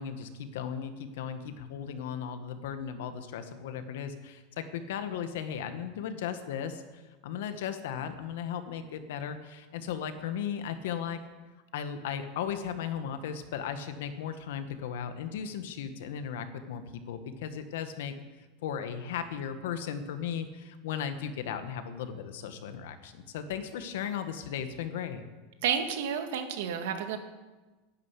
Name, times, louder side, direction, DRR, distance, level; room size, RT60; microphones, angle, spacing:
voice 1, 0.0-11.2 11.7-25.2, left 8 dB, 70° left, 9 dB, 1.5 m, -36 dB
voice 2, 25.6-27.2, right 8 dB, 70° right, 6 dB, 1.9 m, -30 dB
11.5 x 10.5 x 8.3 m, 1.2 s
supercardioid pair, 180°, 0 cm